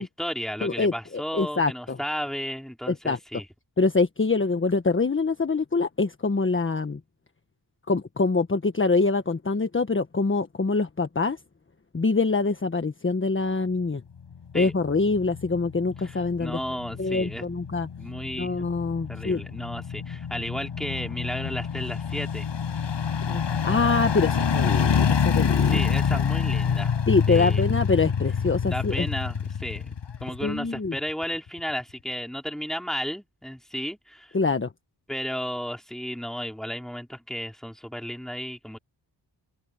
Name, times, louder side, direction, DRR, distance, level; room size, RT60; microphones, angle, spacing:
voice 1, 0.0-3.5 14.5-14.7 16.0-17.4 18.0-18.7 19.1-22.5 25.5-26.9 27.3-27.6 28.7-29.9 30.2-34.4 35.1-38.8, equal, ahead, 3.8 m, -33 dB
voice 2, 0.6-2.0 2.9-3.2 3.8-7.0 7.9-11.4 11.9-14.0 14.5-16.6 17.0-17.9 18.4-19.4 23.3-25.8 26.1-26.2 27.1-29.1 30.4-31.0 34.3-34.7, left 3 dB, 25° left, 1.4 m, -25 dB
sound 1, 14.3-30.9 31.2-31.3, left 7 dB, 70° left, 6.8 m, -27 dB
cardioid pair, 75°, 44 cm